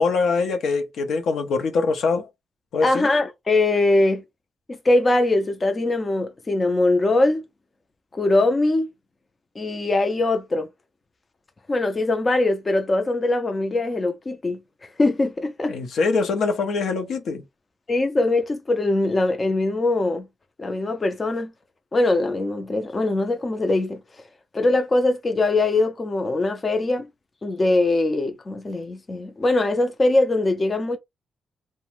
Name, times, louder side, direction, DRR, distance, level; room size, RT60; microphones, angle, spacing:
voice 1, 0.0-2.3 2.7-3.1 15.7-17.4, left 4 dB, 75° left, 0.6 m, -23 dB
voice 2, 2.8-4.2 4.7-7.4 8.1-8.9 9.6-10.7 11.7-14.6 15.0-15.7 17.9-20.3 20.6-21.5 21.9-24.0 24.5-27.1 27.4-31.0, left 2 dB, 30° left, 0.4 m, -22 dB
2.5 x 2.1 x 3.1 m
cardioid pair, 105°, 0 cm